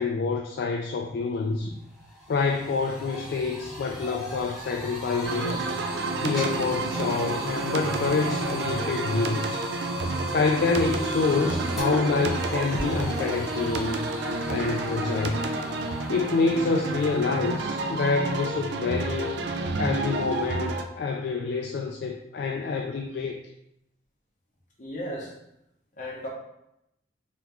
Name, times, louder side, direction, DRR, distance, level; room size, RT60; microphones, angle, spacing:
voice 1, 0.0-1.8 2.3-5.7 6.2-9.7 10.3-14.1 14.5-15.4 16.1-19.5 19.8-23.4, left 4 dB, 55° left, 2 dB, 0.3 m, -27 dB
sound 1, 1.3-1.4 1.7-20.8, right 1 dB, ahead, 1.1 m, -37 dB
Bơi Xuyên San Hô, 5.2-20.8, right 2 dB, 65° right, 0.4 m, -30 dB
voice 2, 24.8-25.3 26.0-26.3, equal, 40° left, -3 dB, 1.0 m, -35 dB
3.7 x 3.4 x 3.0 m, 0.82 s
head